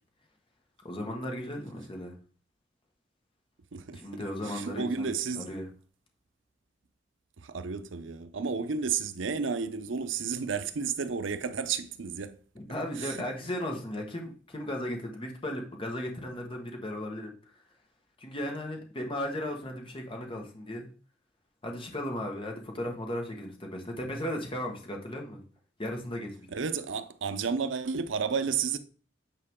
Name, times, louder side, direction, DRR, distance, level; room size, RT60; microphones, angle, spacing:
voice 1, 0.8-2.1 3.9-5.1 5.4-5.7 12.5-17.3 18.2-20.9 21.6-25.4 25.8-26.5, left 1 dB, 30° left, 1.5 m, -36 dB
voice 2, 3.7-5.5 7.4-12.4 12.9-13.3 26.5-28.8, right 5 dB, 80° right, 0.7 m, -32 dB
9.0 x 4.8 x 3.6 m
head